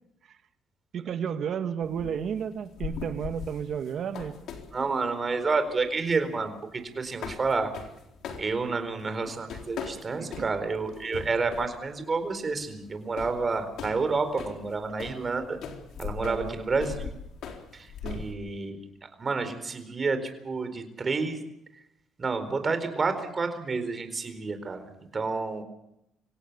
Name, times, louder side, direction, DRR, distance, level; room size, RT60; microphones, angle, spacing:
voice 1, 0.9-4.4 10.2-10.5 16.2-16.5 18.0-18.2, right 7 dB, 60° right, 9 dB, 1.8 m, -32 dB
sound 1, 1.8-18.3, left 6 dB, 70° left, 4.0 m, -41 dB
voice 2, 4.7-6.5 7.0-7.7 8.4-15.6 16.0-17.1 17.7-18.8 19.2-21.4 22.2-25.6, right 4 dB, 30° right, 9 dB, 4.3 m, -29 dB
26.0 x 17.0 x 6.9 m, 0.80 s
cardioid pair, 100°, 0 cm